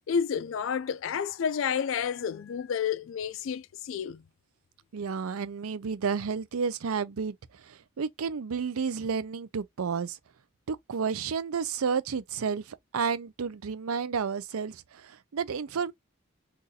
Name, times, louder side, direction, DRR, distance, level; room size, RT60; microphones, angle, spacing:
voice 1, 0.1-4.2, left 7 dB, 65° left, 0.3 m, -30 dB
voice 2, 4.9-10.2 10.7-15.9, right 6 dB, 90° right, 0.5 m, -31 dB
2.7 x 2.5 x 3.9 m
head